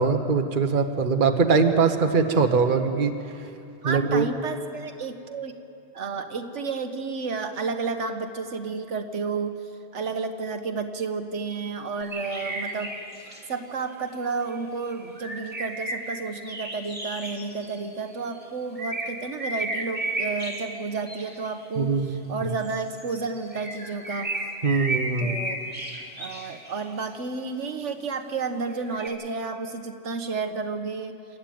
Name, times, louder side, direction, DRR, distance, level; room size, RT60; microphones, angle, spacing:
voice 1, 0.0-3.1 3.8-4.3 21.8-22.1 22.4-22.5 24.6-25.4, right 5 dB, 45° right, 6 dB, 1.3 m, -22 dB
voice 2, 3.8-5.5 5.9-9.6 9.9-12.9 13.2-21.9 22.3-24.3 25.2-25.6 26.2-31.4, right 4 dB, 75° right, 6 dB, 1.4 m, -31 dB
sound 1, 12.0-13.5 14.5-18.4 18.8-21.6 22.6-27.1 28.7-29.1, right 2 dB, 10° right, 2.7 m, -33 dB
27.5 x 12.5 x 9.3 m, 2.6 s
omnidirectional pair, 1.2 m